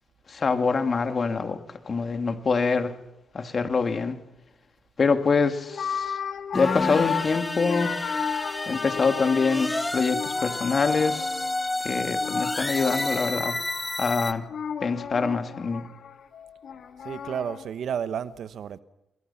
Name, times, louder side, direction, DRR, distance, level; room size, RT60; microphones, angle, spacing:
voice 1, 0.3-1.6 1.9-3.0 3.3-4.2 5.0-6.2 6.5-7.9 8.7-11.4 11.8-13.6 14.0-14.5 14.8-15.9, left 4 dB, 50° left, 2.6 m, -25 dB
sound 1, 5.2-5.4 5.7-9.7 10.1-11.8 12.2-17.6, left 7 dB, 70° left, 1.9 m, -34 dB
sound 2, 6.5-14.3, left 2 dB, 15° left, 1.5 m, -30 dB
voice 2, 17.0-18.8, right 8 dB, 70° right, 1.1 m, -31 dB
27.5 x 22.0 x 5.9 m
supercardioid pair, 55°, 0 cm